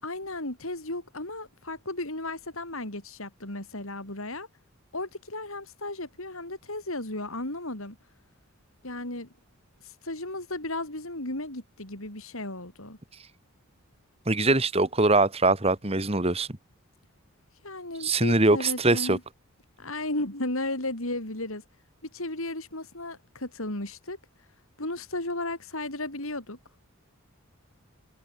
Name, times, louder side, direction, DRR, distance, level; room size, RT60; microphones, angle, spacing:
voice 1, 0.0-4.5 4.9-8.0 8.8-9.3 9.8-13.0 17.6-19.2 19.8-21.6 22.1-24.2 24.8-26.6, left 2 dB, 70° left, 5.6 m, -34 dB
voice 2, 14.3-16.5 18.0-19.2, right 2 dB, 25° right, 1.8 m, -22 dB
head